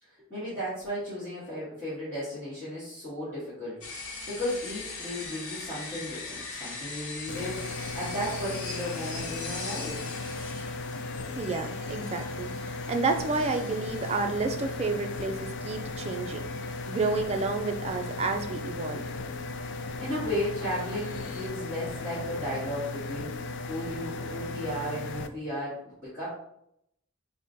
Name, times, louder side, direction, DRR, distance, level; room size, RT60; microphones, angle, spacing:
voice 1, 0.3-10.0 19.6-26.3, equal, 10° left, -13 dB, 1.4 m, -35 dB
sound 1, 3.8-21.5, left 3 dB, 90° left, 1.0 m, -42 dB
sound 2, 7.3-25.3, left 3 dB, 60° left, 0.3 m, -36 dB
voice 2, 11.3-16.5 16.9-19.1, right 3 dB, 30° right, 5 dB, 0.4 m, -30 dB
3.6 x 2.2 x 4.0 m, 0.75 s
head